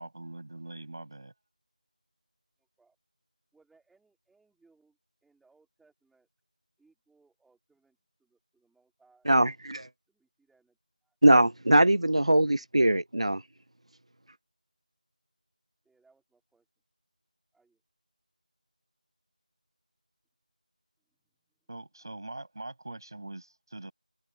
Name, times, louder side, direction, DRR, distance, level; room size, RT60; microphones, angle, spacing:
voice 1, 0.0-1.3 21.7-23.9, right 2 dB, 30° right, 7.1 m, -42 dB
voice 2, 2.6-3.0 3.5-6.3 6.8-9.3 10.1-11.2 15.8-16.7 17.5-17.8, right 4 dB, ahead, 3.0 m, -68 dB
voice 3, 9.3-9.9 11.2-13.4, right 1 dB, 45° right, 0.4 m, -22 dB
open air
figure-of-eight pair, 175°, 4 cm